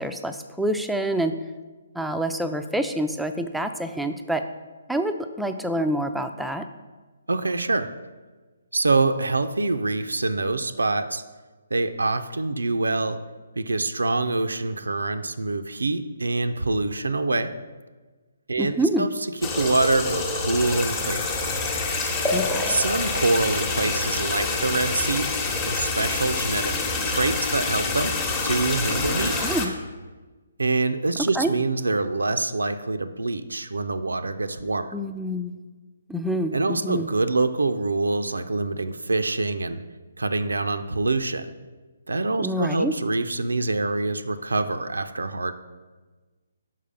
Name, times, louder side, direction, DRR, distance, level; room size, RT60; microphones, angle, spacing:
voice 1, 0.0-1.4 1.9-4.5 4.9-6.7 18.6-19.1 22.3-22.8 29.4-29.7 31.2-31.5 34.9-35.5 36.1-37.1 42.4-42.9, right 1 dB, ahead, 7 dB, 0.3 m, -27 dB
voice 2, 7.3-7.9 8.7-11.2 11.7-13.2 13.6-17.6 18.5-19.1 19.4-21.3 22.7-25.3 25.7-26.8 27.0-28.1 28.4-29.3 30.6-35.0 36.5-39.8 40.2-41.5 42.1-45.5, right 3 dB, 85° right, 9 dB, 0.4 m, -25 dB
sound 1, 19.4-29.7, left 3 dB, 20° left, 0.9 m, -26 dB
5.6 x 4.8 x 5.1 m, 1.3 s
figure-of-eight pair, 145°, 0 cm